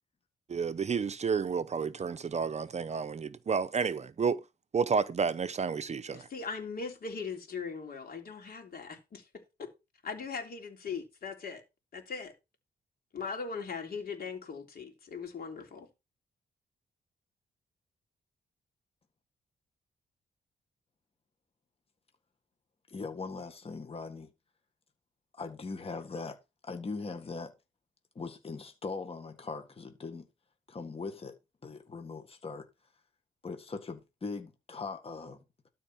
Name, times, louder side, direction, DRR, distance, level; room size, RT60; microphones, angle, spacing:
voice 1, 0.5-4.4 4.7-6.3, right 5 dB, 40° right, 0.6 m, -31 dB
voice 2, 6.1-9.3 9.6-9.7 10.0-11.6 11.9-12.3 13.1-15.9, left 5 dB, 55° left, 3.3 m, -39 dB
voice 3, 22.9-24.3 25.4-26.4 26.7-27.5 28.2-30.3 30.7-31.4 31.6-32.7 33.4-35.7, left 4 dB, 35° left, 1.7 m, -40 dB
12.5 x 4.4 x 5.7 m
cardioid pair, 100°, 18 cm